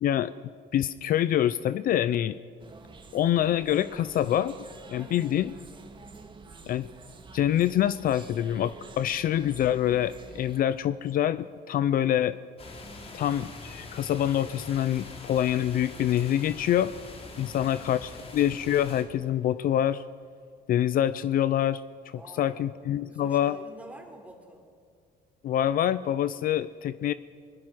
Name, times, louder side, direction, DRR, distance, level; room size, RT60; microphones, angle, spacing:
voice 1, 0.0-0.3 0.7-2.4 3.1-4.6 4.9-5.5 6.6-6.9 7.3-12.4 13.1-16.9 17.4-20.0 20.7-23.6 25.4-27.1, left 11 dB, 60° left, 16 dB, 0.6 m, -26 dB
sound 1, 2.6-10.6, right 4 dB, 30° right, 1.8 m, -48 dB
voice 2, 4.9-5.4 12.8-13.3 17.3-17.8 22.2-22.6 23.1-24.7, right 1 dB, 10° right, 2 dB, 3.9 m, -48 dB
sound 2, 12.6-19.0, left 3 dB, 35° left, 3.6 m, -44 dB
24.0 x 20.0 x 6.2 m, 2.2 s
cardioid pair, 110°, 17 cm